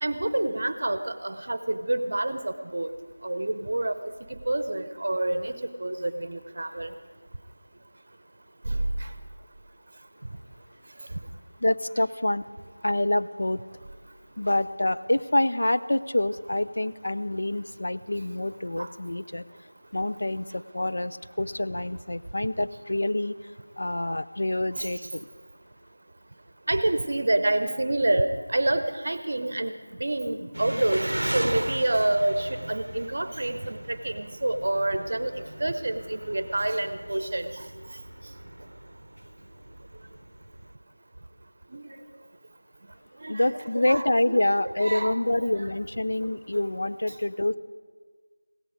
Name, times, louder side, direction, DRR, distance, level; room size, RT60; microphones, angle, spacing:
voice 1, 0.0-2.9 3.2-4.0 4.3-5.5 5.8-6.9 8.7-9.1 18.8-18.9 24.8-24.9 26.7-37.5 41.7-41.9 43.2-45.7, right 1 dB, 45° right, 10 dB, 0.8 m, -28 dB
voice 2, 11.6-12.4 12.8-13.6 14.4-19.4 19.9-23.4 23.8-25.3 43.3-47.6, left 1 dB, 65° left, 12 dB, 0.5 m, -26 dB
Engine, 30.5-40.7, right 1 dB, 85° right, 0.5 m, -37 dB
16.5 x 13.5 x 5.0 m, 1.5 s
figure-of-eight pair, 175°, 0 cm